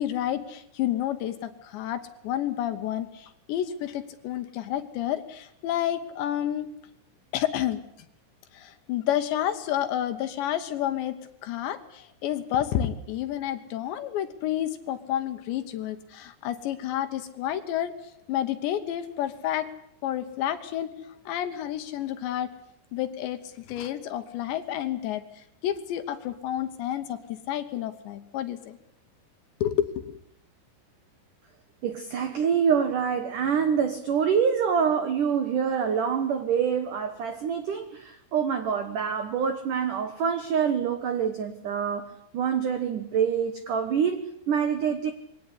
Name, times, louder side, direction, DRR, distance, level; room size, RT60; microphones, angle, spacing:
voice 1, 0.0-6.7 7.3-7.8 8.5-11.1 11.4-17.9 18.3-19.7 20.0-22.5 22.9-28.8 29.6-30.2, left 11 dB, 70° left, 9 dB, 3.0 m, -30 dB
voice 2, 31.8-42.1 42.3-45.1, right 7 dB, 90° right, 8 dB, 1.8 m, -26 dB
22.5 x 18.0 x 10.0 m, 0.72 s
omnidirectional pair, 6.0 m